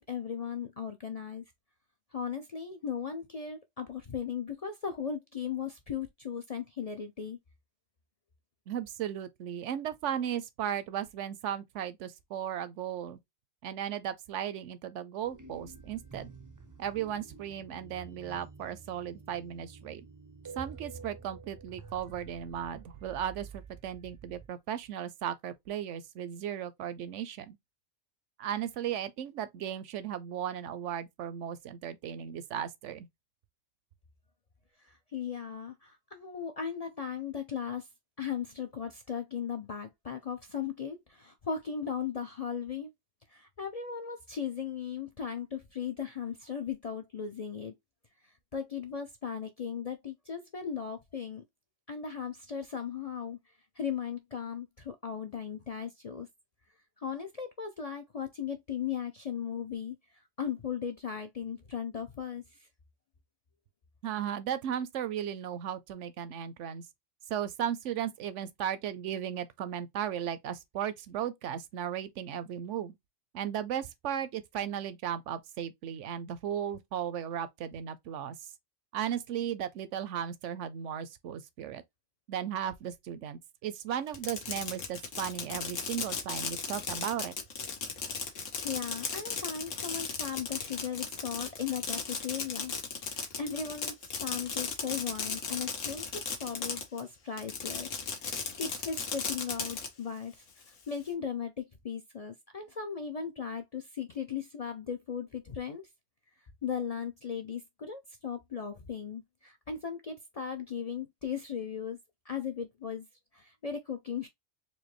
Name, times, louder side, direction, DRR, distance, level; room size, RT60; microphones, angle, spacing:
voice 1, 0.0-1.4 2.1-7.4 34.8-37.9 38.2-42.9 43.3-47.7 48.5-51.4 51.9-53.4 53.8-56.3 57.0-60.0 60.4-62.6 88.4-92.7 93.0-93.9 94.2-100.3 100.9-105.9 106.6-112.0 112.3-113.1 113.3-114.3, left 7 dB, 45° left, 0.5 m, -37 dB
voice 2, 8.7-13.2 13.6-16.3 16.8-20.0 20.6-27.6 28.4-33.1 64.0-66.8 67.3-73.0 73.3-78.4 78.9-81.8 82.3-87.3, right 9 dB, 80° right, 0.9 m, -36 dB
sound 1, 15.2-24.5, right 5 dB, 30° right, 0.3 m, -49 dB
Fireworks, 84.1-97.0 97.4-99.9, left 5 dB, 90° left, 1.4 m, -36 dB
4.3 x 2.7 x 2.9 m
omnidirectional pair, 1.3 m